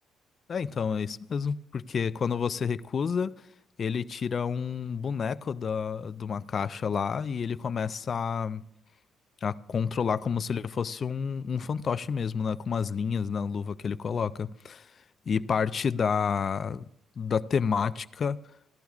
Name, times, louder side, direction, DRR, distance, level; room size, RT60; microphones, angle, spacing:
voice 1, 0.5-3.3 3.8-8.6 9.4-14.9 15.3-16.9 17.2-18.4, left 6 dB, 50° left, 0.4 m, -29 dB
16.5 x 11.5 x 2.4 m
cardioid pair, 80°, 0 cm